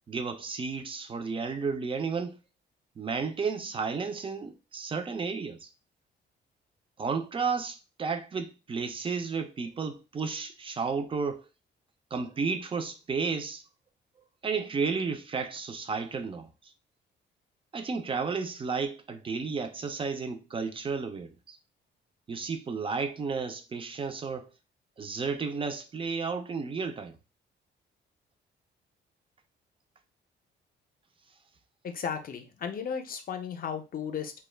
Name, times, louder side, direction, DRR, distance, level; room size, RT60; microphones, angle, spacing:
voice 1, 0.1-2.4 3.0-5.7 7.0-11.4 12.1-13.6 14.4-16.7 17.7-21.6 22.3-24.5 25.0-27.2, right 5 dB, 25° right, 0.4 m, -32 dB
voice 2, 31.8-34.3, left 7 dB, 45° left, 0.5 m, -35 dB
2.2 x 2.1 x 3.2 m
cardioid pair, 90°, 20 cm